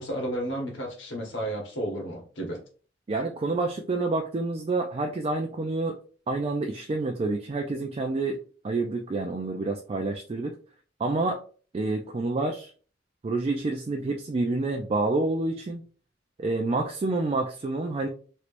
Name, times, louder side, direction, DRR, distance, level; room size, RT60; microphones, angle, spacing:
voice 1, 0.0-2.6, right 1 dB, 75° left, 0 dB, 1.1 m, -32 dB
voice 2, 3.1-6.0 6.3-8.4 8.6-10.5 11.0-11.4 11.7-12.7 13.2-15.8 16.4-18.1, right 3 dB, 30° right, 3 dB, 0.3 m, -28 dB
3.1 x 3.0 x 2.5 m, 0.40 s
head